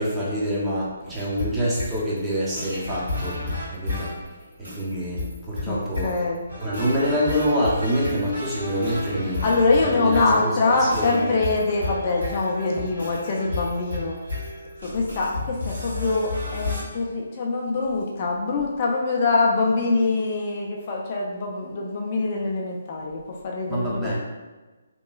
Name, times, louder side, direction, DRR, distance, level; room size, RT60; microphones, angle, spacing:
voice 1, 0.0-3.4 3.7-4.1 4.6-6.2 6.6-9.5 9.8-10.4 10.7-11.3 23.7-24.2, equal, 10° right, -7 dB, 0.7 m, -26 dB
sound 1, 1.1-16.8, left 2 dB, 90° right, 1.3 m, -33 dB
voice 2, 6.0-6.4 9.4-14.2 14.8-24.2, left 3 dB, 40° left, -1 dB, 0.4 m, -24 dB
2.8 x 2.2 x 2.3 m, 1.2 s
figure-of-eight pair, 145°, 0 cm